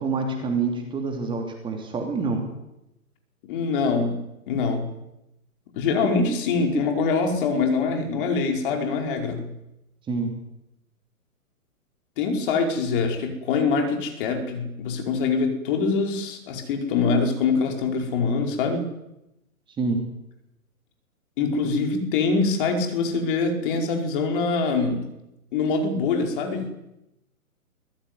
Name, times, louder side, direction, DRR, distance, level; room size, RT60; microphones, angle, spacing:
voice 1, 0.0-2.4 10.1-10.3 19.8-20.0, right 4 dB, 10° right, 3 dB, 3.0 m, -26 dB
voice 2, 3.5-4.2 4.5-4.9 5.7-9.5 12.2-18.8 21.4-25.1 25.5-26.7, left 4 dB, 35° left, 4 dB, 5.0 m, -24 dB
24.0 x 18.5 x 9.7 m, 0.90 s
hypercardioid pair, 145°, 45 cm